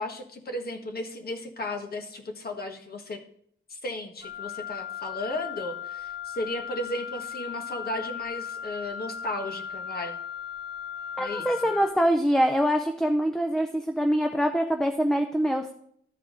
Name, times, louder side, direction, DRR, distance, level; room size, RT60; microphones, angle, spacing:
voice 1, 0.0-3.2 3.7-10.2 11.2-11.8, left 1 dB, 50° left, 4 dB, 1.3 m, -35 dB
Wind instrument woodwind instrument, 4.2-12.0, left 8 dB, 15° right, 2.2 m, -37 dB
voice 2, 11.2-15.7, equal, ahead, 5 dB, 0.5 m, -24 dB
13.0 x 4.6 x 3.8 m, 0.67 s
wide cardioid pair, 155°, 20 cm